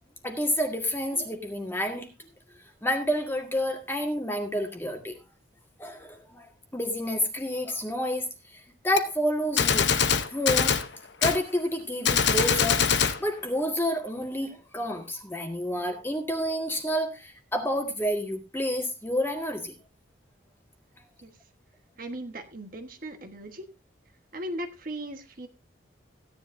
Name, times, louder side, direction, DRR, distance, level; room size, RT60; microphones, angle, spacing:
voice 1, 0.2-2.1 2.8-5.2 5.8-6.5 6.7-8.3 8.5-9.9 10.3-10.8 11.2-12.9 13.2-19.7, equal, 10° left, 3 dB, 1.8 m, -29 dB
Gunshot gunfire, 9.0-9.1 9.6-10.9 11.2-11.4 12.0-13.2, left 7 dB, 65° left, 0.9 m, -23 dB
voice 2, 22.0-23.7 24.3-25.5, right 1 dB, 45° right, 6 dB, 1.4 m, -37 dB
16.0 x 10.5 x 2.7 m, 0.24 s
head